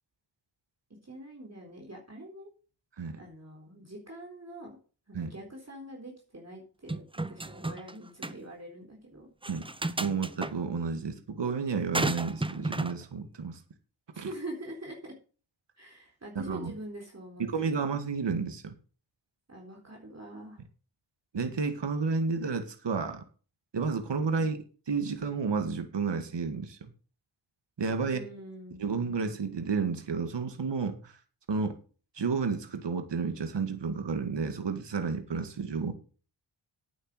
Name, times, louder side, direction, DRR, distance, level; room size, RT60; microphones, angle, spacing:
voice 1, 1.0-2.5 3.2-4.8 5.1-9.3 14.1-15.1 15.8-17.8 19.5-20.6 28.0-28.8, right 1 dB, 35° right, 0 dB, 3.8 m, -44 dB
sound 1, 6.9-7.9 8.2-8.4 9.4-10.5 11.9-13.0, right 2 dB, 10° right, 0.8 m, -32 dB
voice 2, 10.0-13.6 14.2-14.3 16.4-16.7 17.4-18.8 21.3-23.2 23.7-26.9 27.8-28.2 28.8-31.2 31.5-31.7 32.1-35.9, right 5 dB, 60° right, 7 dB, 1.9 m, -31 dB
9.1 x 8.1 x 6.6 m, 0.37 s
cardioid pair, 65°, 47 cm